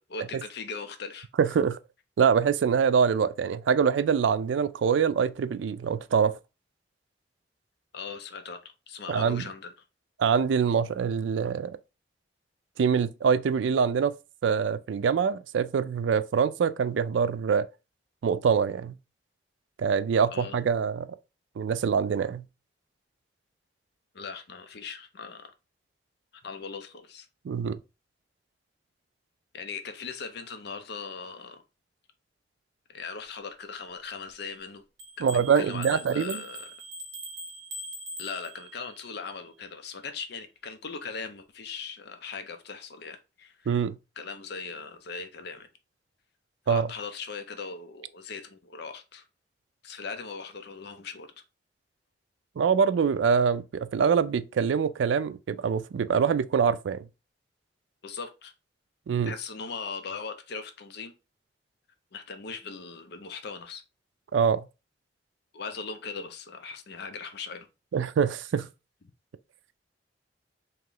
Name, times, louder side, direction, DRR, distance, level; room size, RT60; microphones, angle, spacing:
voice 1, 0.0-1.3 7.9-8.6 8.9-9.7 20.3-20.6 24.1-25.5 26.4-27.3 29.5-31.6 32.9-34.8 35.2-36.7 38.2-43.8 44.2-45.7 46.7-49.2 49.8-51.3 58.0-58.5 59.2-61.1 62.1-63.8 65.5-67.7, left 5 dB, 65° left, 0.6 m, -39 dB
voice 2, 1.4-1.8 2.2-6.4 9.1-9.5 10.2-11.7 12.8-14.1 14.4-17.7 18.2-18.9 19.8-21.2 21.6-22.5 27.4-27.8 35.2-36.4 43.7-44.0 46.7-46.9 52.6-57.0 59.1-59.3 64.3-64.7 67.9-68.7, right 6 dB, 90° right, 0.3 m, -24 dB
sound 1, 35.0-39.0, right 1 dB, 65° right, 0.9 m, -41 dB
3.0 x 2.9 x 3.7 m
head